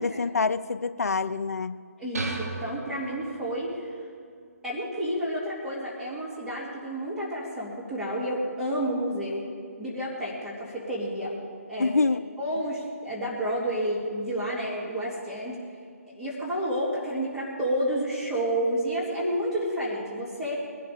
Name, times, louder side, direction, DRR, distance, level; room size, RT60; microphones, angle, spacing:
voice 1, 0.0-1.7 11.8-12.2, left 4 dB, 70° left, 14 dB, 0.6 m, -26 dB
voice 2, 2.0-3.9 4.6-9.5 9.8-11.4 11.7-11.9 12.4-15.6 16.0-20.7, equal, 5° right, -8 dB, 2.5 m, -30 dB
sound 1, 2.1-3.8, right 2 dB, 75° right, 1.5 m, -35 dB
20.5 x 12.5 x 5.0 m, 2.1 s
figure-of-eight pair, 145°, 9 cm